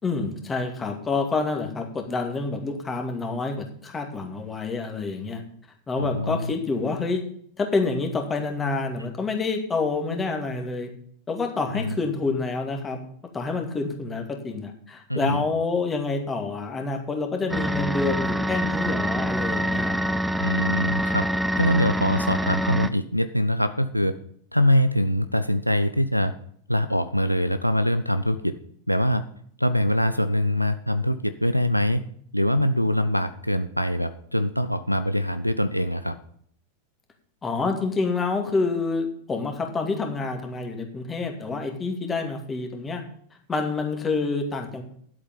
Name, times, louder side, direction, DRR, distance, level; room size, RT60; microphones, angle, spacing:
voice 1, 0.0-5.4 5.9-7.2 7.6-10.9 11.3-13.0 13.3-20.2 37.4-43.0 43.5-44.8, left 3 dB, 15° left, 4 dB, 2.3 m, -28 dB
voice 2, 6.0-6.5 11.7-12.0 15.1-15.4 20.4-21.3 21.5-24.1 24.5-26.3 26.7-28.5 28.9-29.2 29.6-32.0 32.3-36.1, equal, 90° left, 11 dB, 0.5 m, -23 dB
sound 1, 17.5-22.9, equal, 5° right, 0.6 m, -25 dB
11.0 x 8.1 x 5.4 m, 0.62 s
figure-of-eight pair, 90°, 0 cm